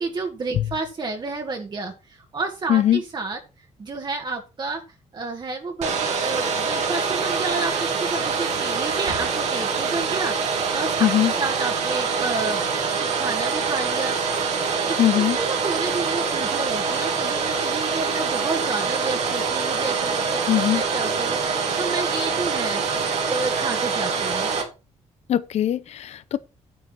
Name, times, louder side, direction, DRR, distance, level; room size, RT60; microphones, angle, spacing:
voice 1, 0.0-3.4 3.8-4.8 5.1-14.4 14.8-22.8 23.3-24.5, right 3 dB, 40° right, 1.9 m, -30 dB
voice 2, 2.7-3.0 11.0-11.3 15.0-15.4 20.5-20.8 25.3-26.4, left 11 dB, 65° left, 0.7 m, -20 dB
Domestic sounds home sounds, 5.8-24.6, right 5 dB, 70° right, 2.8 m, -25 dB
9.6 x 8.3 x 4.5 m
cardioid pair, 120°, 12 cm